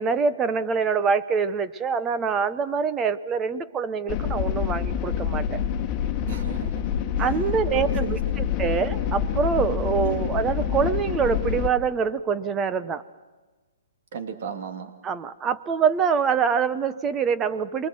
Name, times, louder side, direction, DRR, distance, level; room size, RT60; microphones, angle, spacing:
voice 1, 0.0-5.6 7.2-13.0 15.0-17.9, right 6 dB, 20° right, 13 dB, 0.9 m, -25 dB
sound 1, 4.1-11.7, left 8 dB, 25° left, 1.7 m, -27 dB
voice 2, 6.3-7.3 7.7-8.2 10.0-10.3 14.1-14.9, right 7 dB, 55° right, 5 dB, 2.6 m, -36 dB
28.0 x 22.5 x 7.7 m, 1.3 s
hypercardioid pair, 140°, 0 cm